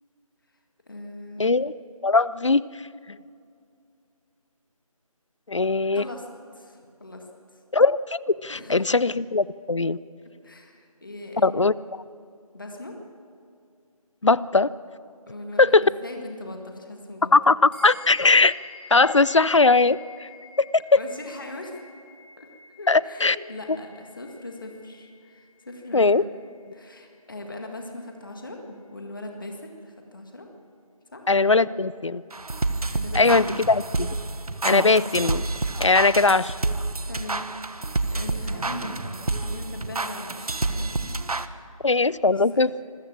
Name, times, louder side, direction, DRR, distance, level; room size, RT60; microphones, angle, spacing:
voice 1, 0.9-1.4 5.9-6.3 6.5-7.3 7.5-7.6 8.5-8.8 10.4-11.7 12.5-12.9 15.3-17.3 21.0-21.9 22.4-22.5 22.8-30.5 31.1-31.2 32.9-33.5 37.1-39.2 39.4-41.2 41.5-41.8 42.3-42.6, left 1 dB, 35° left, 2 dB, 1.8 m, -40 dB
voice 2, 1.4-1.7 2.0-2.6 5.5-6.0 7.7-10.0 11.4-11.7 14.2-14.7 15.6-15.9 17.3-18.5 18.9-20.3 20.6-20.7 20.9-21.0 22.9-23.4 25.9-26.2 31.3-32.2 33.1-34.2 34.6-35.5 35.8-36.5 41.8-42.7, left 3 dB, 55° left, 20 dB, 0.5 m, -20 dB
sound 1, 17.7-27.4, left 4 dB, 15° left, 4.0 m, -49 dB
sound 2, 32.3-41.5, right 3 dB, 80° right, 1.2 m, -29 dB
26.0 x 14.5 x 7.4 m, 2.4 s
figure-of-eight pair, 180°, 19 cm